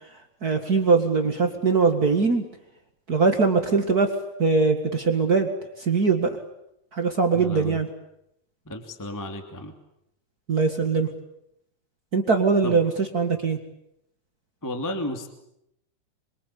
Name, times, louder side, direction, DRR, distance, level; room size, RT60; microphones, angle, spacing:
voice 1, 0.4-2.4 3.1-4.1 4.4-5.5 5.8-6.3 6.9-7.9 10.5-11.1 12.1-13.6, right 4 dB, 60° right, 5 dB, 1.0 m, -21 dB
voice 2, 7.3-7.8 8.7-9.7 12.6-12.8 14.6-15.3, left 1 dB, 5° left, 5 dB, 1.8 m, -33 dB
27.0 x 24.5 x 8.7 m, 0.80 s
omnidirectional pair, 4.9 m